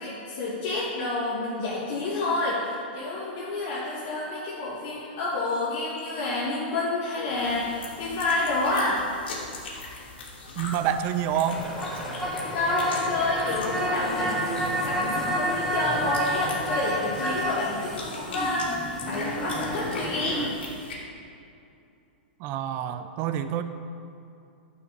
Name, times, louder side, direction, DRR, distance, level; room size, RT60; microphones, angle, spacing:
voice 1, 0.0-9.0 12.5-14.5 14.8-20.5, left 2 dB, 45° left, -9 dB, 2.2 m, -29 dB
sound 1, 7.4-20.9, left 3 dB, 85° left, 2.5 m, -41 dB
voice 2, 10.6-11.6 22.4-23.6, right 9 dB, 35° right, 10 dB, 0.5 m, -27 dB
sound 2, 11.5-20.5, equal, 5° left, 1.2 m, -30 dB
11.0 x 5.6 x 5.3 m, 2.6 s
hypercardioid pair, 140°, 6 cm